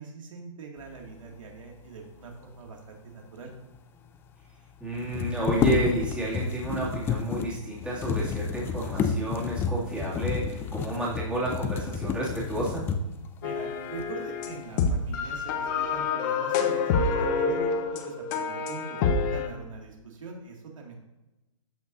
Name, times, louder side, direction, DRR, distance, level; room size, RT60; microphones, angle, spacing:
voice 1, 0.0-3.5 13.4-21.0, right 4 dB, 75° right, 0 dB, 2.2 m, -43 dB
sound 1, 3.5-3.6 3.7-3.8 4.9-13.3 14.0-14.1 14.5-15.2 15.5-16.1, left 6 dB, 15° left, 0.4 m, -30 dB
voice 2, 4.8-12.8, right 2 dB, 5° right, -7 dB, 2.4 m, -31 dB
sound 2, 13.4-19.5, left 5 dB, 35° left, 0.9 m, -27 dB
14.5 x 5.8 x 2.7 m, 1.0 s
hypercardioid pair, 145°, 17 cm